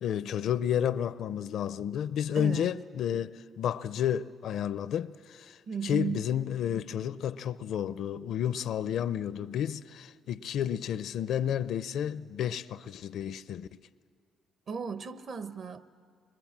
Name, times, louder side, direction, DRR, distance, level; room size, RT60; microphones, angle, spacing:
voice 1, 0.0-5.6 5.8-13.7, left 9 dB, 75° left, 0.5 m, -31 dB
voice 2, 2.3-2.7 5.7-6.3 14.7-15.8, right 6 dB, 55° right, 1.0 m, -35 dB
26.0 x 22.0 x 7.4 m
cardioid pair, 90°, 0 cm